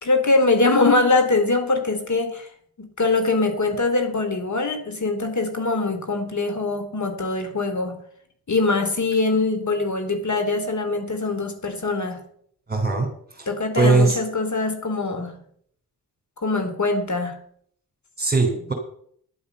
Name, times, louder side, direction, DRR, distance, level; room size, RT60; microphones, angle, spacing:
voice 1, 0.0-2.5 2.8-8.0 8.5-12.2 13.5-15.4 16.4-17.4, left 3 dB, 40° left, 6 dB, 3.4 m, -22 dB
voice 2, 12.7-13.5 13.7-14.2 18.2-18.7, right 3 dB, 20° right, -1 dB, 3.9 m, -20 dB
11.0 x 8.5 x 6.8 m, 0.64 s
hypercardioid pair, 45°, 44 cm